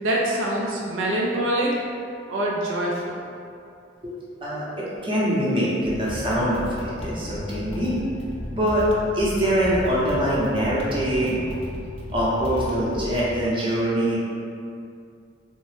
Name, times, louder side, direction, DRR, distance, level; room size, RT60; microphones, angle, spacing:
voice 1, 0.0-1.7 2.3-3.2, right 1 dB, 85° right, -3 dB, 0.4 m, -24 dB
voice 2, 4.0-7.9 8.5-8.8 9.1-11.5 12.1-14.2, equal, 30° right, -7 dB, 0.6 m, -24 dB
sound 1, 5.8-13.3, left 1 dB, 30° left, 0.3 m, -34 dB
2.8 x 2.1 x 3.1 m, 2.4 s
head